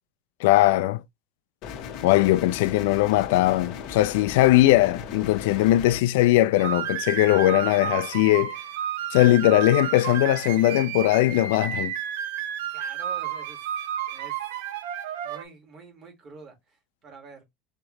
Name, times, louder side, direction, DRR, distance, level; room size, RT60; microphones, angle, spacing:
voice 1, 0.4-1.0 2.0-8.5 9.1-11.9, left 16 dB, 75° left, 0.4 m, -20 dB
sound 1, 1.6-6.0, left 7 dB, 45° left, 0.7 m, -37 dB
sound 2, 6.6-15.4, right 9 dB, 80° right, 0.6 m, -31 dB
voice 2, 12.7-13.7 14.1-14.5 15.2-17.4, right 4 dB, 30° right, 1.6 m, -47 dB
3.7 x 3.2 x 2.9 m
cardioid pair, 170°, 0 cm